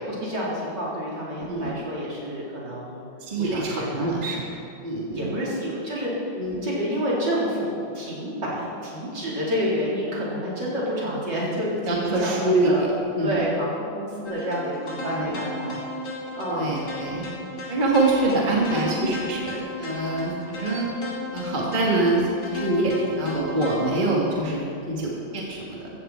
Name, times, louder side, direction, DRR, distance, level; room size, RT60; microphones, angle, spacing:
voice 1, 0.0-3.0 3.4-4.1 5.1-6.3 6.6-12.8 13.2-15.8 16.3-16.6 18.3-18.5, equal, 55° right, -6 dB, 4.6 m, -29 dB
voice 2, 3.2-4.4 4.8-5.4 6.4-6.6 11.9-12.9 13.2-13.4 15.1-15.3 16.5-17.3 17.7-20.9 21.3-25.9, right 2 dB, 25° right, -3 dB, 1.8 m, -25 dB
sound 1, 14.3-24.0, left 2 dB, 55° left, 3.2 m, -35 dB
15.5 x 14.5 x 4.4 m, 2.7 s
omnidirectional pair, 2.2 m